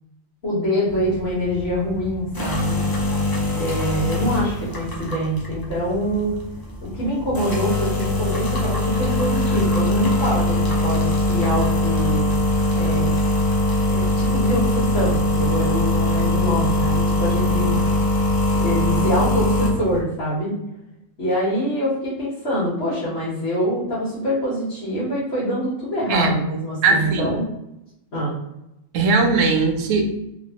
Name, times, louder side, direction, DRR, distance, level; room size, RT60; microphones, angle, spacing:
voice 1, 0.4-2.8 3.6-6.3 6.8-12.3 12.7-13.3 13.8-17.8 18.6-20.5 21.2-27.5 28.1-28.3, equal, 60° left, -10 dB, 1.4 m, -25 dB
sound 1, 0.9-20.0, left 1 dB, 35° left, 0.3 m, -22 dB
voice 2, 26.8-27.4 28.9-30.3, right 3 dB, 80° right, 3 dB, 0.9 m, -19 dB
3.1 x 2.4 x 2.8 m, 0.86 s
omnidirectional pair, 1.3 m